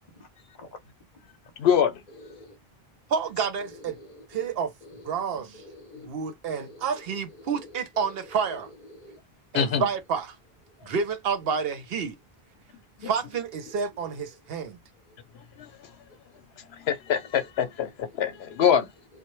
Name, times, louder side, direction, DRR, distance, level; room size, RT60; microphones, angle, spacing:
voice 1, 1.6-2.0 5.4-5.5 5.9-6.1 9.5-9.9 13.0-13.1 15.6-15.7 16.9-18.9, left 8 dB, 85° left, 0.9 m, -24 dB
voice 2, 2.1-2.6 3.6-4.5 4.8-5.2 5.5-6.1 6.4-9.2 13.6-14.4 15.1-15.2 18.1-18.4, left 1 dB, 50° left, 0.8 m, -49 dB
voice 3, 3.1-4.0 4.3-4.7 5.1-5.6 6.0-8.7 9.5-10.3 10.8-12.1 13.0-14.8, right 6 dB, 70° right, 0.8 m, -29 dB
2.1 x 2.1 x 3.0 m
omnidirectional pair, 1.0 m